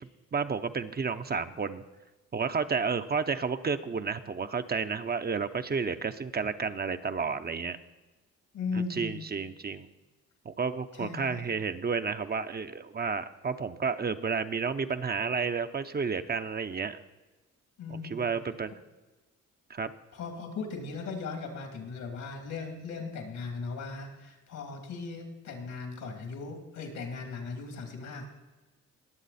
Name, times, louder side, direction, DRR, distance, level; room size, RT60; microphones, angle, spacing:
voice 1, 0.3-1.8 2.3-7.8 8.7-9.9 10.4-17.0 17.9-18.7 19.7-19.9, right 5 dB, 30° right, 9 dB, 0.7 m, -31 dB
voice 2, 8.5-9.2 10.9-11.5 17.8-18.2 20.1-28.3, left 4 dB, 80° left, 4 dB, 2.8 m, -38 dB
20.5 x 7.4 x 4.2 m, 1.2 s
cardioid pair, 85°, 30 cm